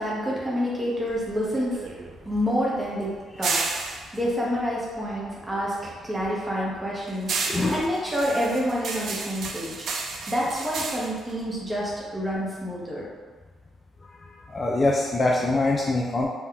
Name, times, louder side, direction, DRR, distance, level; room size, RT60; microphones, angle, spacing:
voice 1, 0.0-1.8 2.3-3.1 3.4-3.6 4.1-7.3 7.7-9.8 10.3-13.1, equal, 15° right, -6 dB, 0.9 m, -28 dB
sound 1, 1.1-5.6 5.9-12.3, right 4 dB, 60° right, 0.3 m, -33 dB
voice 2, 7.4-7.8 14.0-16.3, left 2 dB, 30° left, -2 dB, 0.3 m, -24 dB
2.5 x 2.2 x 3.7 m, 1.4 s
cardioid pair, 110°, 0 cm